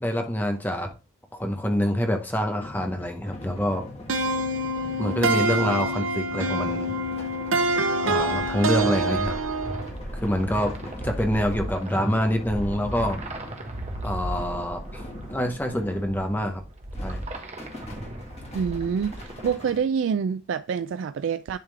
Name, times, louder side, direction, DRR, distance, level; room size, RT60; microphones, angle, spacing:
voice 1, 0.0-0.9 1.3-3.8 5.0-6.9 8.0-9.4 10.2-10.7 11.0-13.2 14.0-15.0 15.3-16.6 17.0-17.2, equal, 10° left, 0.8 m, -26 dB
sound 1, 2.5-16.6 16.9-19.8, left 1 dB, 30° left, 1.7 m, -42 dB
sound 2, 4.1-9.9, right 2 dB, 85° right, 0.9 m, -26 dB
sound 3, 8.1-19.5, right 1 dB, 35° right, 1.3 m, -36 dB
voice 2, 18.5-21.6, right 6 dB, 65° right, 0.3 m, -27 dB
10.5 x 3.6 x 3.3 m
head